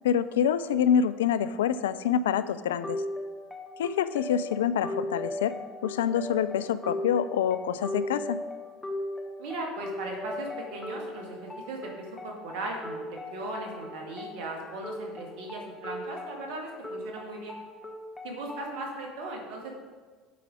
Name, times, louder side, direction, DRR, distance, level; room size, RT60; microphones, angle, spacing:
voice 1, 0.0-3.0 3.8-5.5 5.8-8.4, left 8 dB, 80° left, 14 dB, 0.3 m, -26 dB
sound 1, 2.8-18.8, left 1 dB, 15° left, 1.2 m, -38 dB
voice 2, 9.4-17.6 18.2-19.7, right 2 dB, 70° right, 1 dB, 1.7 m, -38 dB
8.5 x 5.1 x 4.8 m, 1.4 s
hypercardioid pair, 70°, 0 cm